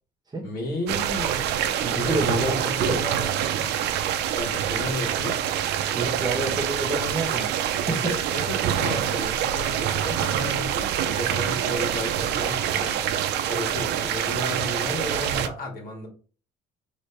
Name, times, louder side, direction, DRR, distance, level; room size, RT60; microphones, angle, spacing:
voice 1, 0.4-1.4 1.9-3.7 4.3-5.5 7.9-16.1, left 1 dB, 60° left, 1.9 m, -33 dB
sound 1, 0.9-15.5, right 10 dB, 80° right, 0.6 m, -26 dB
voice 2, 1.8-3.0 5.8-8.4, right 2 dB, 25° right, 1.3 m, -29 dB
4.2 x 3.3 x 3.4 m
cardioid pair, 110°, 17 cm